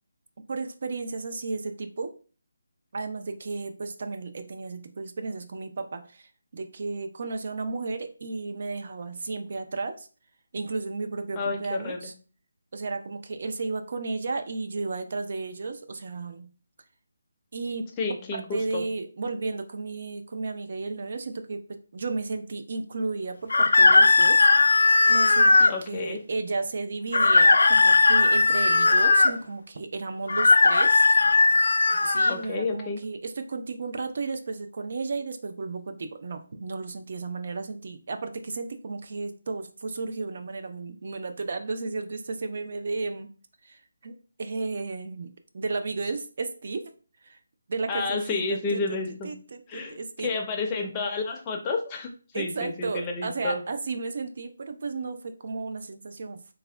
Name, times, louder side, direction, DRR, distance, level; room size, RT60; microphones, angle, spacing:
voice 1, 0.5-2.1 2.9-10.1 10.5-12.1 12.7-16.5 17.5-17.9 18.3-21.6 21.9-24.5 25.1-31.0 32.0-43.3 43.6-44.1 44.4-46.9 47.2-47.4 47.7-49.0 49.2-50.3 52.3-56.5, right 3 dB, 45° right, 7 dB, 0.4 m, -33 dB
voice 2, 11.4-12.1 18.0-18.8 25.7-26.2 32.3-33.0 47.9-49.3 49.7-53.6, left 4 dB, 15° left, 1 dB, 0.4 m, -30 dB
sound 1, 23.5-25.7 27.1-29.3 30.3-32.4, left 3 dB, 75° left, 0.3 m, -18 dB
3.5 x 2.1 x 3.3 m, 0.38 s
hypercardioid pair, 170°, 0 cm